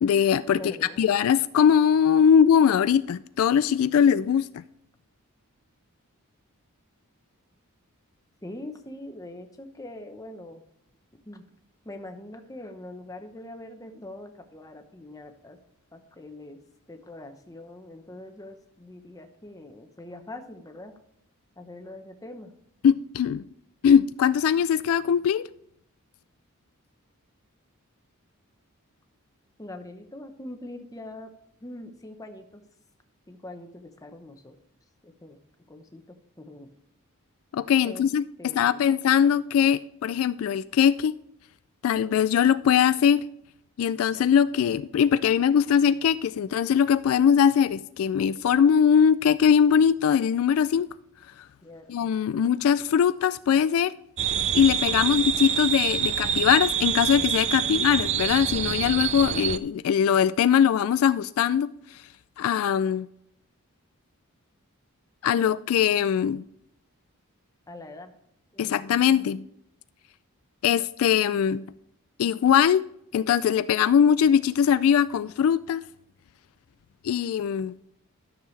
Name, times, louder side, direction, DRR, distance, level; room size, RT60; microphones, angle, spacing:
voice 1, 0.0-0.6 1.0-4.6 22.8-23.4 23.8-25.5 37.5-41.1 41.8-43.2 43.8-50.9 51.9-53.9 54.5-62.0 62.4-63.1 65.2-66.4 68.6-69.5 70.6-71.6 72.2-72.8 73.1-75.8 77.0-77.8, left 8 dB, 70° left, 0.3 m, -21 dB
voice 2, 0.5-1.1 8.4-10.6 11.2-11.4 11.8-15.6 15.9-16.6 16.9-21.0 21.6-22.5 29.6-31.3 31.6-32.6 33.3-34.6 35.0-35.4 35.7-36.0 36.4-36.7 37.8-38.0 38.4-38.8 51.6-51.9 52.3-52.4 54.8-55.3 57.6-58.0 67.7-68.1 68.5-68.8, left 1 dB, 15° left, 0.9 m, -43 dB
sound 1, 54.2-59.6, right 8 dB, 30° right, 0.3 m, -26 dB
12.5 x 6.7 x 3.2 m
head